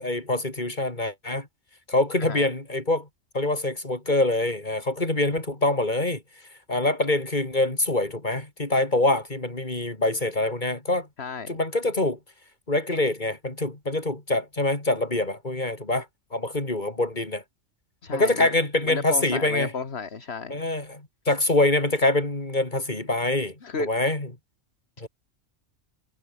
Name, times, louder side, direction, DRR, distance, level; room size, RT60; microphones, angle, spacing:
voice 1, 0.0-1.5 1.9-3.1 3.3-6.2 6.7-11.1 11.5-12.2 12.7-16.1 16.3-17.4 18.1-19.7 20.5-24.3 25.0-25.1, left 2 dB, 35° left, 4.3 m, -25 dB
voice 2, 11.2-11.5 18.0-18.5 18.8-20.7 23.6-23.9, left 5 dB, 55° left, 2.0 m, -33 dB
omnidirectional pair, 1.3 m